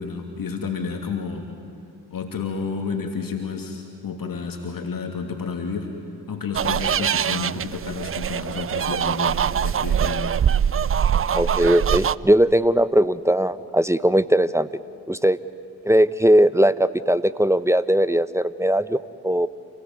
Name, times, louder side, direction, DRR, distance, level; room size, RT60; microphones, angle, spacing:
voice 1, 0.0-1.5 2.1-5.9 6.3-10.3, left 5 dB, 50° left, 3 dB, 2.8 m, -30 dB
sound 1, 6.5-12.1, right 8 dB, 30° right, 0.6 m, -23 dB
voice 2, 11.3-14.7 15.1-15.4 15.8-19.5, right 1 dB, 5° right, 15 dB, 0.9 m, -19 dB
29.5 x 17.5 x 9.4 m, 2.4 s
hypercardioid pair, 50°, 44 cm